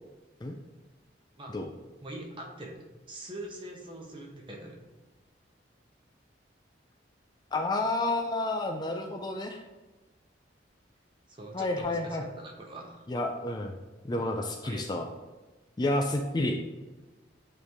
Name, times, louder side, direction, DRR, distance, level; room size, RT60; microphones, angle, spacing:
voice 1, 2.0-2.8 3.1-4.8 11.3-13.1 14.6-15.1, right 1 dB, 25° right, 0 dB, 1.0 m, -43 dB
voice 2, 7.5-9.6 11.5-12.2 13.1-13.7 14.0-15.1 15.8-16.6, left 2 dB, 20° left, 3 dB, 0.3 m, -30 dB
8.6 x 3.2 x 3.5 m, 1.2 s
head